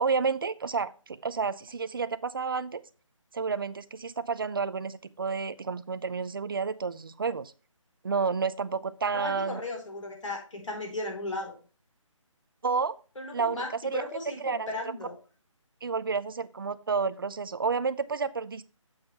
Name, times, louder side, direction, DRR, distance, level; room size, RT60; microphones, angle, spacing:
voice 1, 0.0-2.8 3.3-7.5 8.0-9.6 12.6-12.9 13.3-14.0 14.4-14.7 15.8-18.7, right 5 dB, 45° right, 13 dB, 0.5 m, -30 dB
voice 2, 9.1-11.6 13.2-15.2, left 2 dB, 70° left, 2 dB, 4.3 m, -36 dB
7.9 x 7.1 x 3.3 m, 0.36 s
hypercardioid pair, 170°, 17 cm